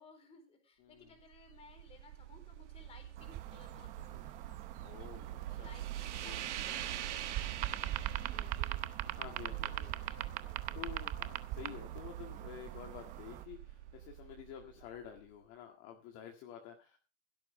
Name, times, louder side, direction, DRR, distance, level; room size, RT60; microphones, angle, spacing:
voice 1, 0.0-4.6 5.4-9.3 9.6-10.9, left 4 dB, 15° left, 6 dB, 4.0 m, -60 dB
voice 2, 0.8-1.1 4.8-5.7 6.2-6.4 6.9-7.2 9.1-9.9 10.7-17.0, left 10 dB, 35° left, 2 dB, 2.0 m, -50 dB
sound 1, 1.1-15.3, right 12 dB, 80° right, 1.7 m, -45 dB
sound 2, 3.2-13.4, right 14 dB, 20° right, 0.7 m, -42 dB
16.0 x 13.0 x 3.3 m, 0.30 s
supercardioid pair, 165°, 35 cm